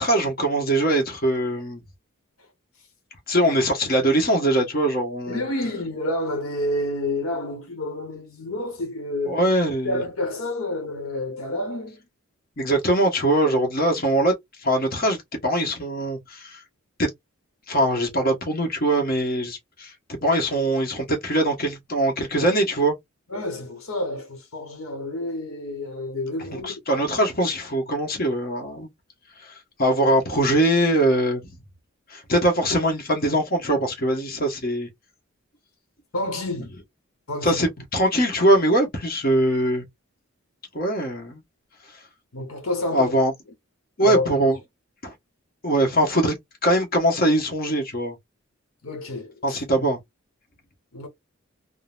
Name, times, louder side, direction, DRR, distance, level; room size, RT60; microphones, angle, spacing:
voice 1, 0.0-1.8 3.3-5.5 9.2-10.0 12.6-16.6 17.0-17.1 17.7-19.9 20.2-22.9 26.6-28.9 29.4-31.6 32.1-34.9 37.4-39.8 40.7-41.4 41.9-42.0 42.9-43.3 44.0-44.6 45.0-45.1 45.6-46.4 46.6-48.2 49.4-50.0, right 1 dB, 45° left, 1.1 m, -22 dB
voice 2, 5.3-9.4 9.8-12.0 23.3-26.7 36.1-36.7 37.3-37.6 42.3-43.1 44.0-44.3 48.8-49.6 50.9-51.1, left 1 dB, 75° left, 1.0 m, -29 dB
3.7 x 2.1 x 2.4 m
head